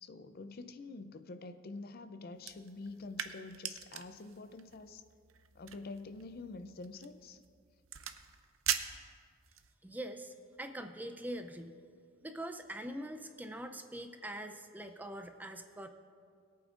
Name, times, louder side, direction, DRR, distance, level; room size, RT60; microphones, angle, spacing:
voice 1, 0.0-5.0 5.5-7.4, left 3 dB, 50° left, 10 dB, 0.5 m, -47 dB
sound 1, 2.4-9.7, right 9 dB, 90° right, 0.6 m, -42 dB
voice 2, 9.8-11.8 12.2-15.9, right 1 dB, 10° right, 7 dB, 0.5 m, -43 dB
22.0 x 8.6 x 2.5 m, 2.2 s
head